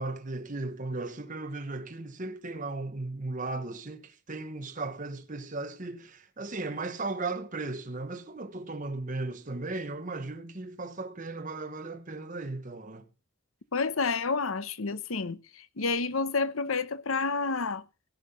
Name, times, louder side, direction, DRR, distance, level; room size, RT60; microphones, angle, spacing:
voice 1, 0.0-13.1, right 3 dB, 40° right, 1.2 m, -36 dB
voice 2, 13.7-17.8, left 4 dB, 80° left, 0.9 m, -29 dB
17.0 x 5.8 x 6.7 m
head